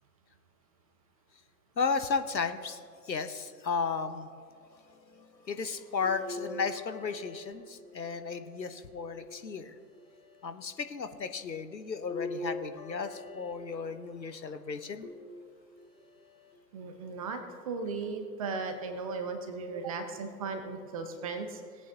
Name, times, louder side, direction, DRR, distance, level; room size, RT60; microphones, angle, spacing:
voice 1, 1.8-4.3 4.9-9.8 10.4-15.1, left 5 dB, 85° left, 10 dB, 0.9 m, -34 dB
sound 1, 6.0-8.3 9.0-10.0 12.0-14.1 15.0-15.9 16.5-16.6 18.0-18.1, left 2 dB, 15° left, 0.7 m, -43 dB
voice 2, 16.7-17.4 17.6-21.6, right 4 dB, 20° right, 7 dB, 0.6 m, -36 dB
18.5 x 8.6 x 2.8 m, 2.3 s
figure-of-eight pair, 115°, 50 cm